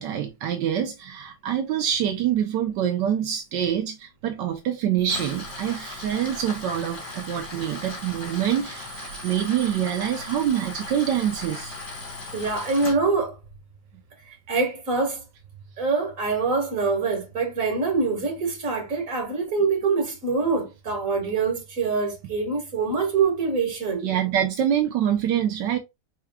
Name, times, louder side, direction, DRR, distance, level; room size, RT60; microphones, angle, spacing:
voice 1, 0.0-8.9 9.2-11.8 24.0-25.8, right 10 dB, 85° right, 1.4 m, -25 dB
Tools, 5.0-13.0, left 2 dB, 50° left, 2.6 m, -37 dB
voice 2, 12.3-13.4 14.5-15.2 15.8-24.1, right 4 dB, 50° right, 2.2 m, -24 dB
4.8 x 4.6 x 2.3 m
omnidirectional pair, 1.9 m